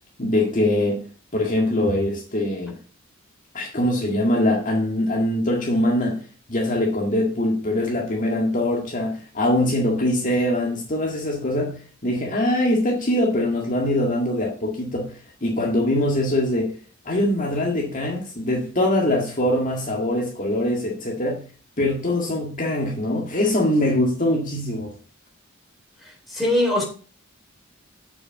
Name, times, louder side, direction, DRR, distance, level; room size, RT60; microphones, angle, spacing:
voice 1, 0.2-1.0 1.3-2.8 3.5-6.2 6.5-16.7 17.1-21.4 21.8-24.9, left 1 dB, 40° left, 1.9 m, -23 dB
voice 2, 26.0-26.8, left 1 dB, ahead, 3.8 m, -22 dB
7.5 x 6.8 x 5.5 m
head